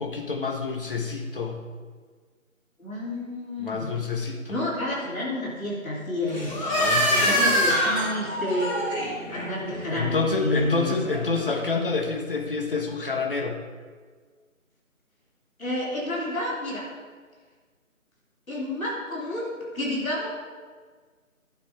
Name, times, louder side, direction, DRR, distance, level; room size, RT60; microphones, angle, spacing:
voice 1, 0.0-1.6 3.6-4.5 6.7-7.7 9.9-13.6, left 4 dB, 40° left, 3 dB, 1.3 m, -28 dB
voice 2, 2.8-3.9 4.5-6.5 7.1-8.7 9.3-11.0 15.6-16.8 18.5-20.3, left 1 dB, 75° left, -5 dB, 3.4 m, -30 dB
sound 1, 6.3-11.7, equal, 15° left, 2.8 m, -26 dB
12.0 x 7.0 x 4.8 m, 1.5 s
figure-of-eight pair, 160°, 42 cm